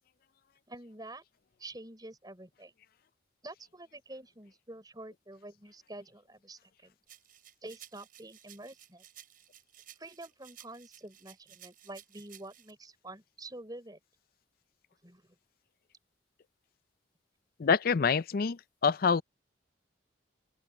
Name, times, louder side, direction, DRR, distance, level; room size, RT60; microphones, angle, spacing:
voice 1, 0.7-1.2 1.6-2.7 3.4-6.9 7.6-9.0 10.0-14.0 15.0-15.3, right 2 dB, 20° right, 5.8 m, -47 dB
sound 1, 7.1-12.7, right 11 dB, 50° right, 6.2 m, -55 dB
voice 2, 17.6-19.2, left 5 dB, 50° left, 0.4 m, -26 dB
open air
head